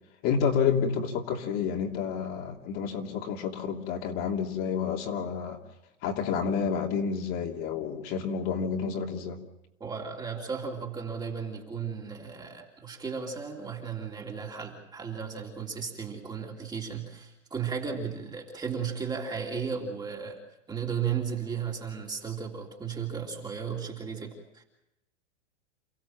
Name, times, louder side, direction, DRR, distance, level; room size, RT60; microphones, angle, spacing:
voice 1, 0.2-5.6 6.0-9.4, left 6 dB, 35° left, 1 dB, 3.1 m, -29 dB
voice 2, 9.8-20.4 20.7-24.6, right 6 dB, 10° right, 0 dB, 3.1 m, -35 dB
29.0 x 16.0 x 7.6 m, 0.91 s
hypercardioid pair, 150°, 37 cm